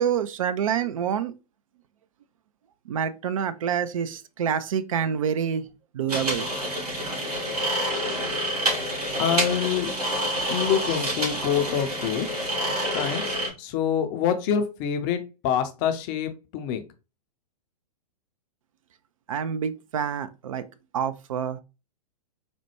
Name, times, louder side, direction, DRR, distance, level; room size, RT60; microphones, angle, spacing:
voice 1, 0.0-1.3 2.9-5.7 5.9-6.5 19.3-20.6 20.9-21.6, right 8 dB, 55° right, 0.4 m, -27 dB
sound 1, 6.1-13.5, equal, 70° right, 2.1 m, -28 dB
voice 2, 9.2-9.9 10.5-12.3 12.9-16.8, left 8 dB, 30° left, 0.5 m, -26 dB
4.2 x 2.2 x 2.9 m
figure-of-eight pair, 110°, 20 cm